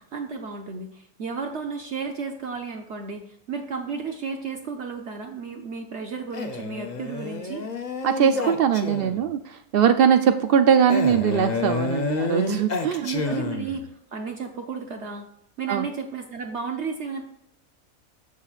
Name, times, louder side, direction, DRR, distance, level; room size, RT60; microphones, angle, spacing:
voice 1, 0.0-7.6 13.0-13.9 14.1-15.3 15.6-17.2, right 5 dB, 55° right, 3 dB, 0.9 m, -33 dB
Male speech man speaking, 6.3-9.3 10.9-13.9, left 3 dB, 40° left, 0.7 m, -29 dB
voice 2, 8.0-13.1 15.7-15.9, right 8 dB, 90° right, 8 dB, 0.5 m, -21 dB
14.5 x 5.7 x 2.4 m, 0.77 s
omnidirectional pair, 1.5 m